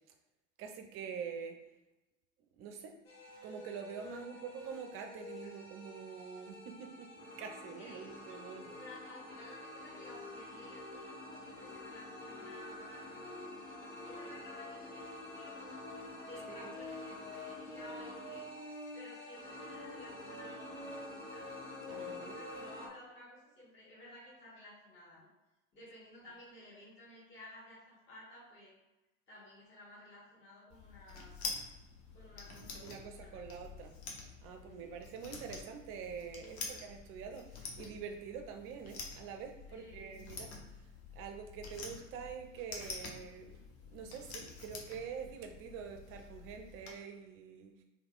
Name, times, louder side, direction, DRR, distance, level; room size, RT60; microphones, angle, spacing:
voice 1, 0.6-1.6 2.5-2.9 3.4-8.8 16.5-16.7 21.9-22.4 32.8-33.9 34.4-40.5 41.1-47.7, right 7 dB, 35° right, 4 dB, 0.5 m, -46 dB
sound 1, 3.0-22.9, left 2 dB, 80° left, 0.9 m, -47 dB
voice 2, 4.1-4.5 5.4-5.5 7.7-8.4 8.7-13.2 14.0-15.9 16.2-21.6 22.2-25.3 25.7-28.8 29.3-31.4 32.1-33.6 34.6-35.0 36.4-36.7 39.7-40.2, left 1 dB, 30° left, -8 dB, 1.4 m, -55 dB
sound 2, 30.7-46.9, left 4 dB, 55° left, 0.9 m, -48 dB
3.2 x 3.1 x 2.4 m, 1.0 s
figure-of-eight pair, 80°, 39 cm